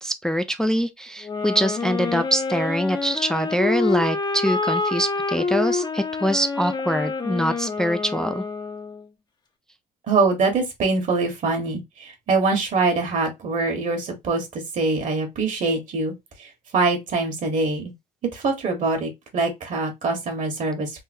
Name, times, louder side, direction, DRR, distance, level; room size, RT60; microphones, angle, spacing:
voice 1, 0.0-8.4, equal, 5° left, 0.3 m, -24 dB
sound 1, 1.2-9.1, left 4 dB, 25° left, 0.7 m, -27 dB
voice 2, 10.1-16.1 16.4-17.9 18.3-20.9, right 3 dB, 50° right, 1.5 m, -24 dB
3.7 x 2.6 x 2.7 m
cardioid pair, 110°, 17 cm